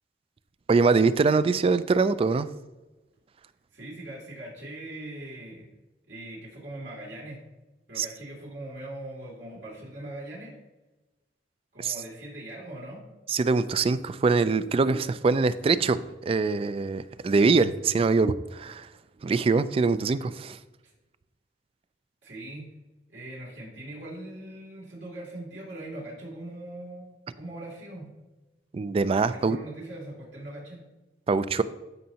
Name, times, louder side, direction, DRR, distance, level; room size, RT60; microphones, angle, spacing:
voice 1, 0.7-2.5 8.0-8.1 11.8-11.9 13.3-18.9 19.2-20.6 28.7-29.6 31.3-31.6, right 4 dB, 30° right, 14 dB, 0.3 m, -23 dB
voice 2, 3.7-5.7 6.1-7.4 7.9-10.6 11.7-13.0 22.2-22.7 23.1-28.1 29.3-30.8, right 1 dB, 75° right, -5 dB, 2.7 m, -41 dB
13.0 x 5.3 x 2.8 m, 1.1 s
head